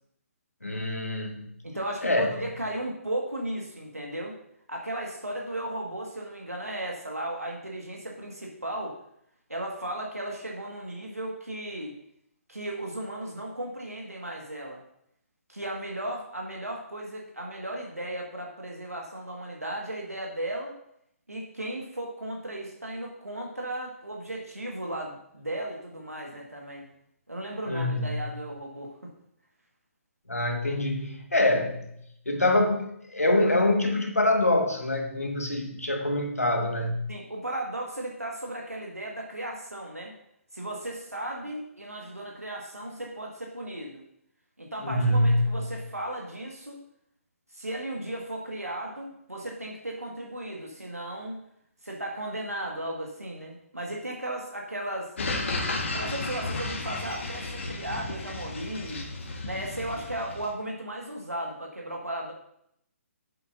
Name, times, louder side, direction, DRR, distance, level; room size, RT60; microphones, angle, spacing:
voice 1, 0.6-1.5 2.0-2.3 27.7-28.1 30.3-31.8 32.2-37.0 44.8-45.7, left 1 dB, 85° left, 3 dB, 1.7 m, -25 dB
voice 2, 1.6-4.4 4.7-9.0 9.5-11.9 12.5-14.8 15.5-20.8 21.3-26.9 27.3-29.1 37.1-40.1 40.5-44.0 44.6-46.8 47.5-51.4 51.8-55.1 55.9-59.1 59.4-62.3, right 1 dB, 85° right, -1 dB, 1.8 m, -35 dB
sound 1, 55.2-60.5, left 2 dB, 55° left, 1.5 m, -33 dB
11.5 x 7.9 x 2.7 m, 0.73 s
figure-of-eight pair, 135°, 8 cm